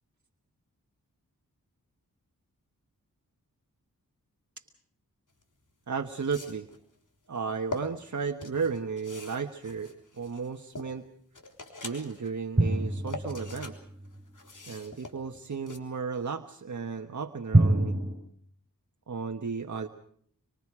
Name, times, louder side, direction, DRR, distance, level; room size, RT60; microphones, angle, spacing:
sound 1, 5.4-5.5 6.1-6.8 7.4-7.8 8.4-10.9 11.3-12.3 12.7-13.8 14.0-15.8, left 3 dB, 60° left, 3.6 m, -42 dB
voice 1, 5.9-6.7 7.3-11.1 11.8-13.8 14.7-18.0 19.1-19.9, right 5 dB, 55° right, 5 dB, 1.3 m, -34 dB
sound 2, 12.6-14.2 17.5-18.1, right 2 dB, 20° right, 6.4 m, -25 dB
25.0 x 25.0 x 4.9 m, 0.63 s
wide cardioid pair, 55°, 35 cm